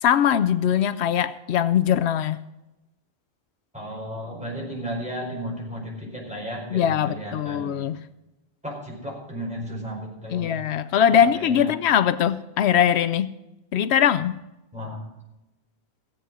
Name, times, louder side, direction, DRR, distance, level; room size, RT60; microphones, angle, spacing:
voice 1, 0.0-2.4 6.7-8.0 10.3-13.3 13.7-14.4, left 9 dB, 85° left, 0.9 m, -21 dB
voice 2, 3.7-7.8 8.6-10.5 11.1-11.7 14.7-15.0, equal, 5° right, 4.8 m, -34 dB
16.0 x 7.9 x 6.2 m
omnidirectional pair, 1.1 m